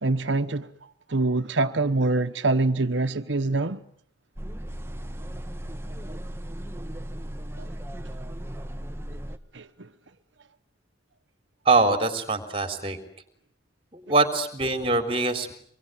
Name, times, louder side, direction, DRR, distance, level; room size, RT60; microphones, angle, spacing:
voice 1, 0.0-0.7 1.1-3.8 7.6-7.7 9.5-9.9, right 2 dB, 85° right, 1.1 m, -25 dB
sound 1, 4.4-9.4, equal, 15° right, 1.3 m, -36 dB
voice 2, 11.7-13.0 13.9-15.5, right 3 dB, 30° right, 4.1 m, -23 dB
26.0 x 23.0 x 9.3 m
head